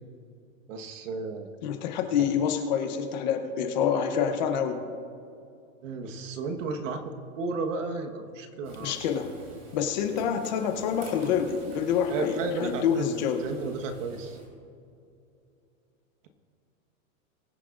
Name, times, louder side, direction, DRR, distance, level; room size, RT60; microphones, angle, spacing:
voice 1, 0.7-1.5 5.8-8.9 12.1-14.4, right 3 dB, 65° right, 6 dB, 1.5 m, -33 dB
voice 2, 1.6-4.8 8.8-9.3 9.7-13.4, left 7 dB, 35° left, 6 dB, 0.8 m, -27 dB
Frying (food), 8.6-14.5, right 1 dB, 30° right, 3.1 m, -49 dB
22.5 x 9.7 x 2.6 m, 2.5 s
supercardioid pair, 175°, 41 cm